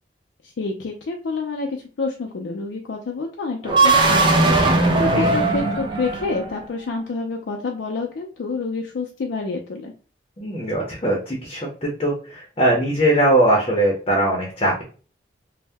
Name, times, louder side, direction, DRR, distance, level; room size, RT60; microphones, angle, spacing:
voice 1, 0.4-9.9, left 3 dB, 80° left, 1 dB, 0.4 m, -28 dB
sound 1, 3.6-6.6, right 2 dB, 25° right, 0.5 m, -18 dB
voice 2, 10.4-14.8, right 1 dB, 30° left, -2 dB, 0.6 m, -20 dB
2.7 x 2.1 x 3.3 m, 0.38 s
head